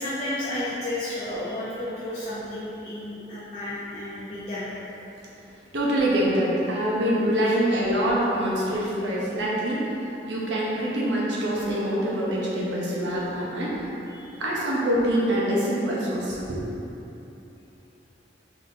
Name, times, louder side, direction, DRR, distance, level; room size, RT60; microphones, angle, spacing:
voice 1, 0.0-4.7 7.4-7.5 14.1-14.3, left 1 dB, 35° left, -10 dB, 0.6 m, -32 dB
voice 2, 5.7-9.9 10.2-13.9 14.4-16.7, right 1 dB, 90° right, -5 dB, 0.8 m, -25 dB
4.1 x 3.8 x 2.6 m, 2.9 s
head